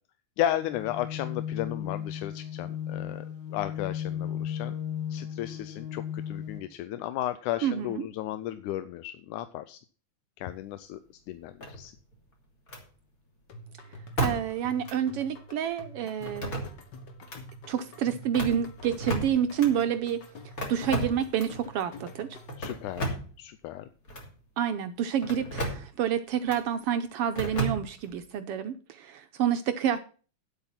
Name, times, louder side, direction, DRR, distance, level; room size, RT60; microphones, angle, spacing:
voice 1, 0.4-3.3 3.5-4.7 5.1-9.8 10.4-11.0 11.3-11.9 22.6-23.9, left 13 dB, 90° left, 12 dB, 2.1 m, -34 dB
sound 1, 0.6-6.6, left 9 dB, 75° left, 3.2 m, -35 dB
voice 2, 7.6-8.0 14.2-16.6 17.7-20.2 20.7-22.3 24.6-30.0, right 9 dB, 80° right, 9 dB, 1.3 m, -28 dB
sound 2, 11.6-12.1 12.7-12.9 14.2-14.6 14.9-15.0 16.3-16.9 17.2-17.4 18.2-19.7 20.6-21.6 22.5-23.4 24.1-24.3 25.2-25.9 26.5-26.6 27.4-28.2, right 1 dB, 30° left, 2.9 m, -33 dB
sound 3, 13.5-23.0, left 1 dB, 50° left, 1.4 m, -47 dB
9.6 x 8.1 x 5.8 m, 0.38 s
omnidirectional pair, 3.5 m